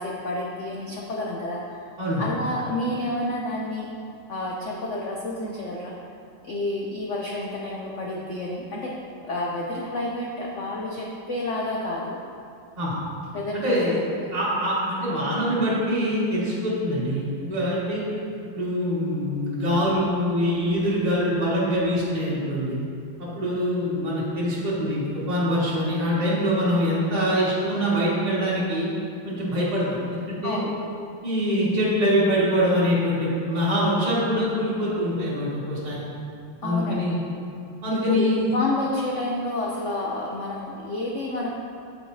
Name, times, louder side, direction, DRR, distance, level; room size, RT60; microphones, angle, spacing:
voice 1, 0.0-1.8 2.2-3.9 4.3-5.9 6.4-9.0 9.2-12.2 13.3-13.8 30.4-30.7 36.6-37.2 37.9-38.3 38.5-41.5, left 1 dB, 80° left, -2 dB, 0.6 m, -29 dB
voice 2, 13.5-14.0 14.3-18.0 18.5-22.8 23.4-28.9 29.2-29.8 30.1-30.6 31.2-36.0 36.6-37.2 37.8-38.5, equal, 20° right, -9 dB, 1.9 m, -24 dB
13.0 x 4.9 x 2.7 m, 2.5 s
omnidirectional pair, 2.2 m